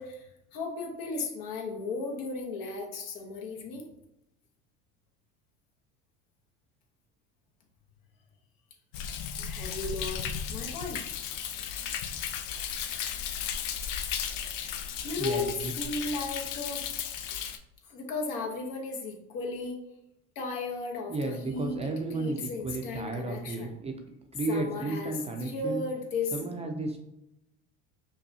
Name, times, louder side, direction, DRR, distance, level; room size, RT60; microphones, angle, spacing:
voice 1, 0.0-3.9 9.4-10.2 10.5-11.0 15.0-16.8 17.8-19.8 20.3-21.8 22.1-23.7 24.5-26.4, left 3 dB, 70° left, 1 dB, 1.1 m, -35 dB
Thunder, 8.9-17.6, left 8 dB, 90° left, 0.5 m, -35 dB
voice 2, 15.2-15.7 21.1-23.9 24.3-25.8 26.3-27.0, right 2 dB, 20° right, 3 dB, 0.5 m, -33 dB
5.3 x 2.3 x 2.7 m, 0.85 s
supercardioid pair, 100°, 35 cm